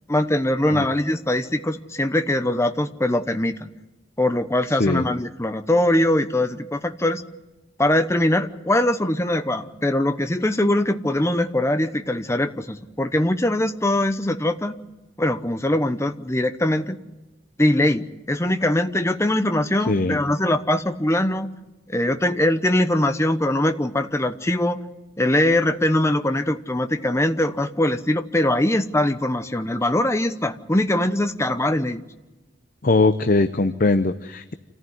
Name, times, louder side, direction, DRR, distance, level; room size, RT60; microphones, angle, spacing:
voice 1, 0.1-3.7 4.2-7.2 7.8-14.8 15.2-17.0 17.6-21.5 21.9-24.8 25.2-32.0, left 1 dB, 15° left, 9 dB, 0.9 m, -22 dB
voice 2, 19.9-20.2 32.8-34.5, left 3 dB, 45° left, 10 dB, 0.7 m, -20 dB
27.5 x 14.5 x 9.5 m, 1.1 s
head